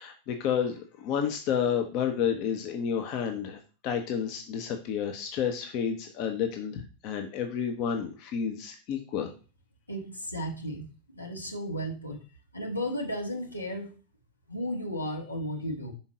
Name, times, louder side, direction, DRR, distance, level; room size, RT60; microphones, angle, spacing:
voice 1, 0.0-9.3, left 8 dB, 40° left, 5 dB, 0.9 m, -30 dB
voice 2, 9.9-10.9 11.1-12.2 12.5-13.9 14.5-15.9, equal, 85° left, 1 dB, 1.4 m, -34 dB
5.7 x 4.5 x 3.8 m, 0.36 s
figure-of-eight pair, 90°, 0 cm